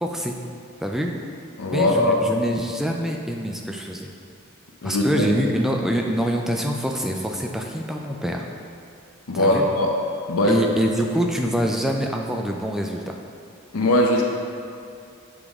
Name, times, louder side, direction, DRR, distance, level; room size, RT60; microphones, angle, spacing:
voice 1, 0.0-0.4 0.8-1.1 1.7-4.1 4.8-8.5 9.3-9.7 10.4-13.2, equal, ahead, 1 dB, 0.4 m, -25 dB
voice 2, 1.6-2.2 4.8-5.2 9.3-9.9 10.3-10.6 13.7-14.2, left 1 dB, 80° left, 0 dB, 0.7 m, -20 dB
7.1 x 4.9 x 3.6 m, 2.5 s
head